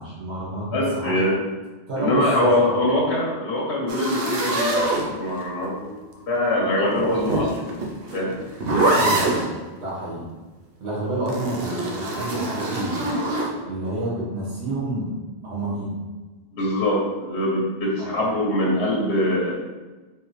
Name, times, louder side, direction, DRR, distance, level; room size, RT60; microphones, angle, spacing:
voice 1, 0.0-1.2 1.9-2.3 2.6-2.8 8.9-10.3 10.8-13.0 13.6-15.1 15.4-15.9 18.0-18.2, right 1 dB, 85° right, -5 dB, 1.7 m, -29 dB
voice 2, 0.7-1.3 2.0-7.7 8.1-8.3 16.5-19.6, left 1 dB, 75° left, -3 dB, 1.1 m, -23 dB
sound 1, 3.9-5.6 6.8-9.5 11.3-13.5, right 2 dB, 65° right, 0.9 m, -24 dB
4.6 x 3.5 x 3.1 m, 1.2 s
omnidirectional pair, 1.1 m